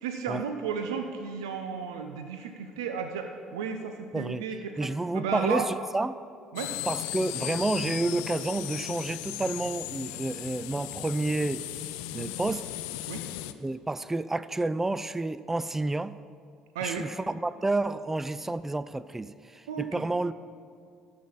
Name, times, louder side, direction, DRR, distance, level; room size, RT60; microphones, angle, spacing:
voice 1, 0.0-4.9 5.1-5.7 6.5-6.7 12.1-12.3 13.1-13.2 16.7-17.0 19.7-20.0, right 6 dB, 80° right, 0.5 m, -33 dB
voice 2, 4.1-4.4 4.8-6.2 6.9-11.6 12.1-12.7 13.6-16.1 16.8-20.3, right 2 dB, 15° right, 0.4 m, -30 dB
sound 1, 6.6-13.5, left 14 dB, 75° left, 0.4 m, -36 dB
12.5 x 4.2 x 7.2 m
hypercardioid pair, 60°, 2 cm